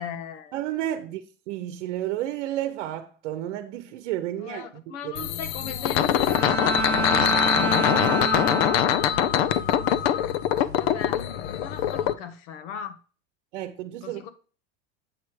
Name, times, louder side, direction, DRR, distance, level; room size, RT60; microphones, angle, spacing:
voice 1, 0.0-0.5 4.4-8.9 9.9-10.1 10.8-13.0 14.0-14.3, left 7 dB, 80° left, 1.2 m, -38 dB
voice 2, 0.5-5.4 8.0-8.1 13.5-14.2, right 13 dB, 65° right, 0.9 m, -32 dB
sound 1, 5.2-12.1, left 10 dB, 60° left, 0.6 m, -23 dB
Bowed string instrument, 6.2-9.4, right 3 dB, 5° left, 0.5 m, -28 dB
8.2 x 4.9 x 4.6 m
supercardioid pair, 160°, 36 cm